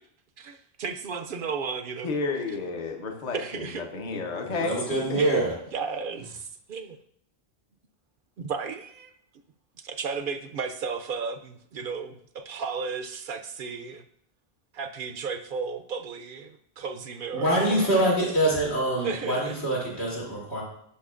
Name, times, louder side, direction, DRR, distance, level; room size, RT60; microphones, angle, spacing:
voice 1, 0.4-2.1 3.3-3.9 5.2-7.0 8.4-9.1 9.8-14.0 14.7-18.1 19.0-20.1, right 5 dB, 65° right, 9 dB, 0.7 m, -34 dB
voice 2, 2.0-4.8 5.1-5.2, left 4 dB, 45° left, 3 dB, 0.9 m, -31 dB
voice 3, 4.4-5.5 17.3-20.6, right 1 dB, 90° left, -6 dB, 3.3 m, -25 dB
11.5 x 5.8 x 2.5 m, 0.69 s
omnidirectional pair, 1.0 m